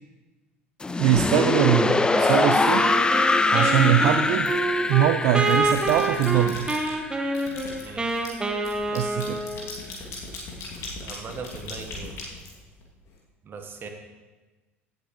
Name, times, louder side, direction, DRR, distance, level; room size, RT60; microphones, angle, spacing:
sound 1, 0.8-7.7, left 3 dB, 10° left, 0.4 m, -23 dB
voice 1, 1.0-2.9 3.5-4.6 4.9-6.7 8.9-9.4, right 11 dB, 50° right, 9 dB, 0.5 m, -22 dB
Wind instrument woodwind instrument, 2.1-9.8, right 2 dB, 15° right, 1.2 m, -27 dB
sound 2, 4.5-5.0 5.4-6.9 7.3-13.1, left 3 dB, 45° left, 2.7 m, -39 dB
voice 2, 7.8-8.2 11.0-12.1 13.4-13.9, right 5 dB, 30° right, 5 dB, 1.5 m, -39 dB
16.5 x 7.9 x 3.2 m, 1.2 s
figure-of-eight pair, 65°, 7 cm